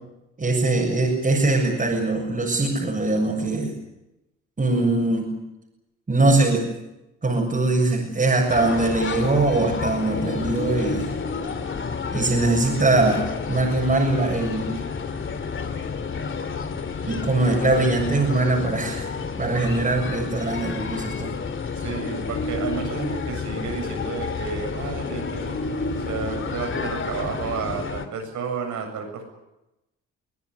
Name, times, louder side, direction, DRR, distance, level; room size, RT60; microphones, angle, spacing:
voice 1, 0.4-3.7 4.6-5.3 6.1-6.7 7.2-11.1 12.1-13.2 13.5-14.8 17.0-19.1 19.4-21.3, right 2 dB, 25° right, -2 dB, 7.2 m, -22 dB
sound 1, 8.5-28.1, left 5 dB, 40° left, 2.7 m, -30 dB
voice 2, 21.8-29.2, right 5 dB, 75° right, 4 dB, 7.8 m, -31 dB
24.0 x 18.0 x 9.7 m, 0.93 s
cardioid pair, 90°, 30 cm